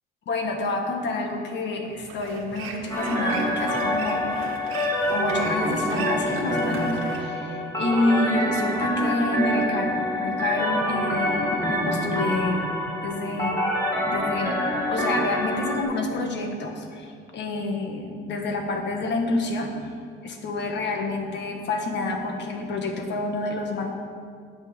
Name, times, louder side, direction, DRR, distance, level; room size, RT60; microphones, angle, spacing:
voice 1, 0.3-4.3 5.1-12.6 13.0-13.6 14.1-14.6 14.9-19.7 20.2-23.9, left 2 dB, 60° left, 3 dB, 1.4 m, -28 dB
sound 1, 1.8-7.2, right 4 dB, 90° right, 1.3 m, -38 dB
sound 2, 2.9-15.8, equal, 15° left, 2.0 m, -26 dB
9.1 x 5.6 x 8.1 m, 2.2 s
cardioid pair, 155°, 21 cm